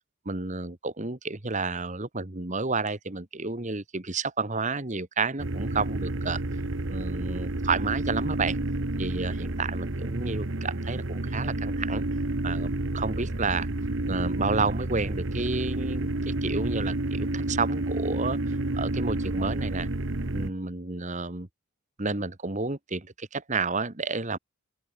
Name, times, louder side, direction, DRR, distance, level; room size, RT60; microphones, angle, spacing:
voice 1, 0.2-6.6 6.9-8.6 9.0-12.0 12.4-13.7 14.1-19.9 20.3-21.5 22.0-24.4, right 4 dB, 35° right, 1.5 m, -31 dB
sound 1, 5.4-20.5, right 2 dB, 60° right, 1.3 m, -30 dB
open air
head